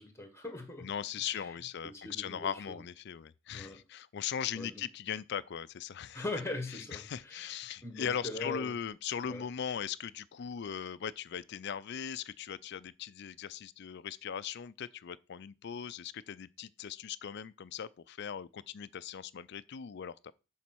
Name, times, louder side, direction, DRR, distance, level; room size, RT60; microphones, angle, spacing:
voice 1, 0.0-0.9 1.3-1.5 1.8-2.8 3.5-3.8 4.5-4.8 6.1-7.5 7.8-8.7 9.3-9.4, left 2 dB, 15° left, 1.5 m, -41 dB
voice 2, 0.8-6.2 6.7-20.3, left 8 dB, 55° left, 0.4 m, -39 dB
7.3 x 4.0 x 6.1 m
head